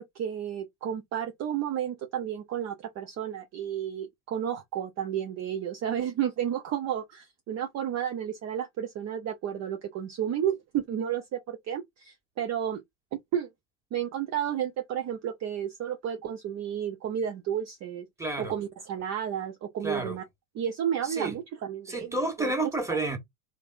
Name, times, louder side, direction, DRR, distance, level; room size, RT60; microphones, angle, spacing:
voice 1, 0.0-12.8 13.3-13.5 13.9-18.1 18.4-20.2 20.5-22.5 22.9-23.0, right 9 dB, 35° right, 0.7 m, -32 dB
voice 2, 18.2-18.5 19.8-20.2 21.0-21.3 21.9-23.2, right 2 dB, 5° right, 1.6 m, -30 dB
3.5 x 3.3 x 2.6 m
hypercardioid pair, 85°, 45 cm